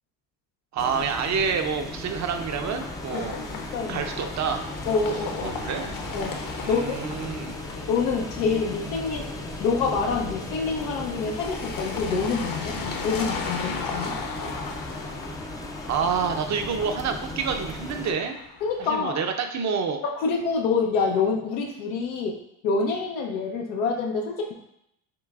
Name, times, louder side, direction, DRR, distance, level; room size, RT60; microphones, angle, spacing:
voice 1, 0.7-3.4 3.9-4.6 5.4-5.9 6.6-7.6 15.9-18.4 18.8-20.0, right 6 dB, 35° right, 6 dB, 0.6 m, -28 dB
sound 1, 0.8-18.1, left 1 dB, 10° left, 0.4 m, -37 dB
sound 2, 2.1-19.1, left 5 dB, 45° left, 0.8 m, -37 dB
voice 2, 3.1-4.1 4.9-5.6 6.1-7.0 7.9-9.3 9.6-12.8 13.0-14.2 18.6-19.2 20.0-22.4 22.6-24.5, left 4 dB, 85° left, 0 dB, 0.8 m, -27 dB
5.9 x 3.2 x 2.3 m, 0.77 s
supercardioid pair, 75°, 48 cm